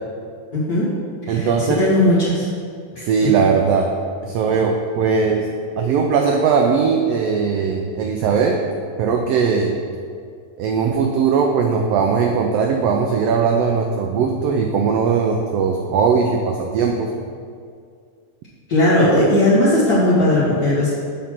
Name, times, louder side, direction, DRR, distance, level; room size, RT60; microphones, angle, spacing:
voice 1, 0.5-0.9 1.3-1.5 1.8-2.5 2.9-3.1 18.7-20.9, left 1 dB, 45° left, -9 dB, 1.3 m, -17 dB
voice 2, 1.3-1.8 3.0-3.9 4.2-5.5 5.8-8.6 9.0-9.8 10.6-17.1, right 5 dB, 85° right, 2 dB, 1.4 m, -19 dB
7.5 x 4.1 x 5.9 m, 2.2 s
omnidirectional pair, 3.3 m